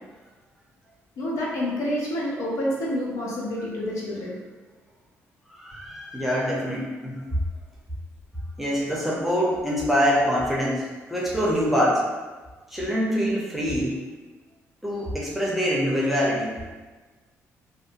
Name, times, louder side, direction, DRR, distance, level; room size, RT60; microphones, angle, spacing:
voice 1, 1.2-4.4, left 1 dB, 90° left, -4 dB, 0.7 m, -28 dB
voice 2, 5.5-7.3 8.6-12.1 12.7-14.0 14.8-16.5, equal, 5° right, -5 dB, 0.4 m, -24 dB
2.4 x 2.2 x 2.7 m, 1.3 s
cardioid pair, 150°, 5 cm